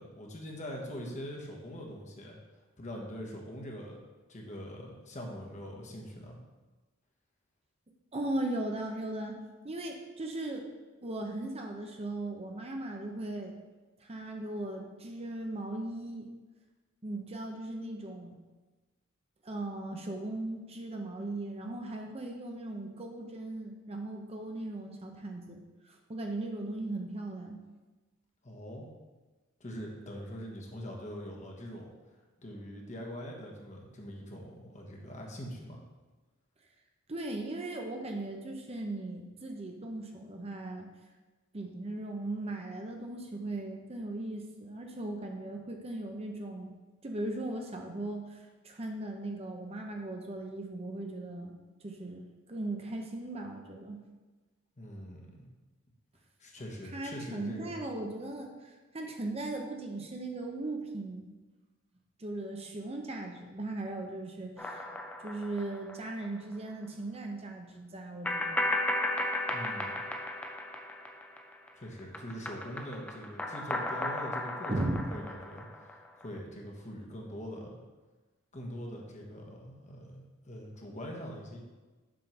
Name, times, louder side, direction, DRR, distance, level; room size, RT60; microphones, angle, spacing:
voice 1, 0.0-2.4 2.8-4.0 4.3-6.4 28.4-28.9 29.6-31.9 32.4-35.8 54.8-55.5 56.4-57.7 69.5-69.9 71.7-77.8 78.5-81.6, equal, 35° left, -1 dB, 1.3 m, -43 dB
voice 2, 8.1-10.7 11.0-13.5 14.0-16.3 17.0-18.4 19.4-27.6 37.1-40.9 41.5-46.7 47.0-51.5 51.8-54.0 56.9-61.2 62.2-64.9 65.2-68.6 74.7-75.0, right 2 dB, 30° right, 2 dB, 0.7 m, -38 dB
sound 1, 64.6-66.2 66.5-66.6 68.2-71.7 72.0-76.2, left 1 dB, 5° left, 0.5 m, -35 dB
7.6 x 3.7 x 5.8 m, 1.2 s
head